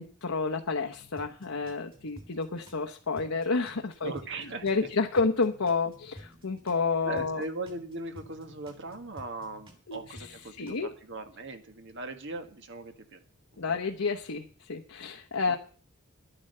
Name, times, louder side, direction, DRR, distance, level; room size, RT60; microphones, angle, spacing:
voice 1, 0.0-4.1 4.6-7.4 9.9-10.0 10.6-10.9 13.6-15.6, left 4 dB, 65° left, 3 dB, 1.0 m, -30 dB
sound 1, 0.9-2.9 3.2-6.9 7.2-10.7, equal, 25° right, 3.2 m, -52 dB
voice 2, 4.0-4.9 7.0-13.2 13.6-13.7 15.5-15.6, right 2 dB, 55° right, 7 dB, 1.7 m, -39 dB
11.5 x 9.9 x 6.7 m, 0.42 s
head